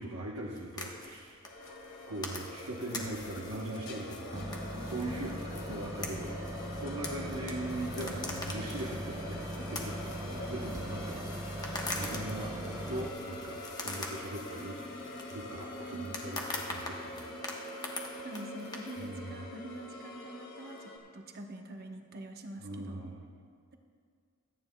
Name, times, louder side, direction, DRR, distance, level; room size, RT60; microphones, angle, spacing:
voice 1, 0.0-1.4 2.1-4.4 4.9-11.5 11.8-14.8 15.3-17.3 19.0-19.4 22.6-23.3, right 1 dB, 70° right, -2 dB, 1.0 m, -40 dB
sound 1, 0.5-19.2, left 2 dB, 20° left, 1.1 m, -44 dB
sound 2, 1.4-21.0, left 1 dB, 60° left, 2.2 m, -44 dB
sound 3, 4.3-13.1, equal, 15° right, 0.5 m, -40 dB
voice 2, 4.3-5.1 15.9-16.2 18.2-23.1, right 1 dB, 45° right, 3 dB, 1.0 m, -45 dB
24.5 x 9.5 x 2.3 m, 2.1 s
head